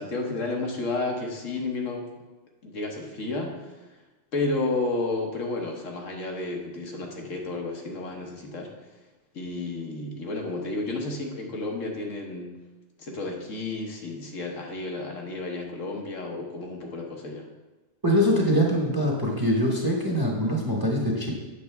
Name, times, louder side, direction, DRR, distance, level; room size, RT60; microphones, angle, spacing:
voice 1, 0.0-2.1 2.6-3.9 4.3-8.9 9.3-12.5 13.0-17.5, left 2 dB, 70° left, 1 dB, 1.4 m, -32 dB
voice 2, 18.0-21.3, equal, 15° right, -2 dB, 1.1 m, -23 dB
8.3 x 6.6 x 3.4 m, 1.1 s
omnidirectional pair, 1.4 m